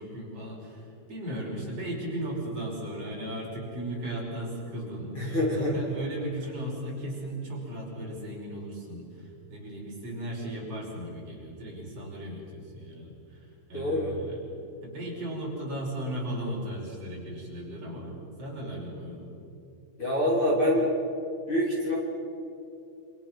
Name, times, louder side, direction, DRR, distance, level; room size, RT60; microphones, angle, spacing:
voice 1, 0.0-14.4 14.8-19.3, right 1 dB, 35° right, -3 dB, 6.5 m, -36 dB
voice 2, 5.2-5.7 13.7-14.2 20.0-20.9 21.5-22.0, left 1 dB, 35° left, -4 dB, 3.6 m, -25 dB
28.0 x 27.0 x 6.1 m, 2.7 s
omnidirectional pair, 4.8 m